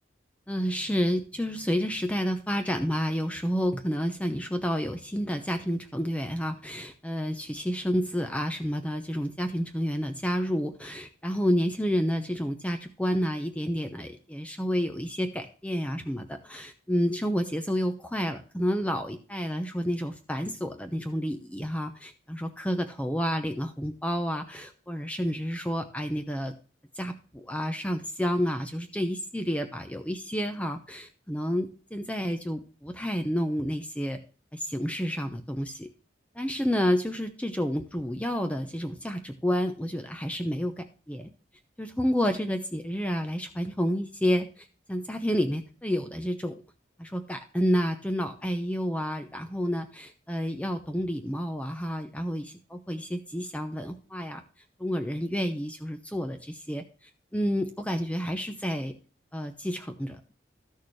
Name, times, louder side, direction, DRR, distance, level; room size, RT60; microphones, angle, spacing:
voice 1, 0.5-26.5 26.9-34.2 34.5-35.9 36.3-41.3 41.8-46.6 47.0-54.4 54.8-56.8 57.3-58.9 59.3-60.2, equal, 5° left, 6 dB, 0.7 m, -30 dB
13.0 x 6.5 x 3.2 m, 0.37 s
head